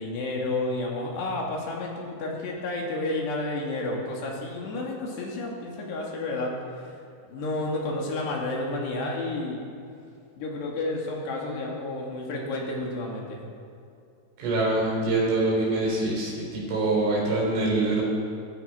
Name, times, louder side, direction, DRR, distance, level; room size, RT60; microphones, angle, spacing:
voice 1, 0.0-6.6 7.3-9.6 10.4-13.4, left 2 dB, 60° left, -1 dB, 4.1 m, -31 dB
voice 2, 14.4-18.1, right 2 dB, 70° right, -4 dB, 6.6 m, -25 dB
18.0 x 15.0 x 5.1 m, 2.6 s
omnidirectional pair, 5.8 m